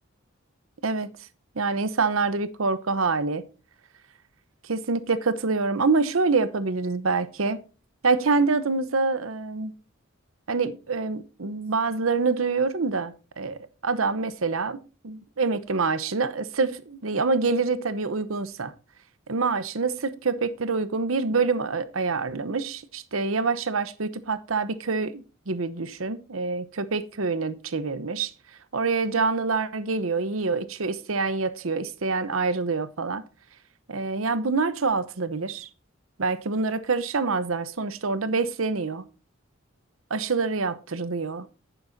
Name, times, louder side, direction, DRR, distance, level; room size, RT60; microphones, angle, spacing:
voice 1, 1.6-3.4 4.6-7.6 8.0-9.7 10.5-14.8 15.0-18.7 19.3-28.3 28.7-33.2 33.9-35.7 36.2-39.0 40.1-41.5, right 4 dB, 85° right, 0.9 m, -26 dB
11.0 x 9.4 x 2.7 m
head